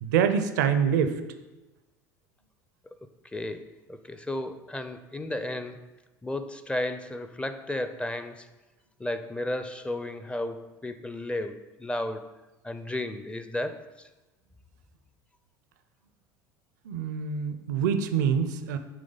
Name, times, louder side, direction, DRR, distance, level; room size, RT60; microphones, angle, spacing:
voice 1, 0.0-1.1 16.8-18.8, right 7 dB, 80° right, 9 dB, 0.5 m, -25 dB
voice 2, 3.0-5.8 6.2-8.5 9.0-12.3 12.6-13.9, left 1 dB, 10° left, 10 dB, 0.5 m, -33 dB
8.8 x 3.2 x 4.0 m, 1.1 s
hypercardioid pair, 75°, 9 cm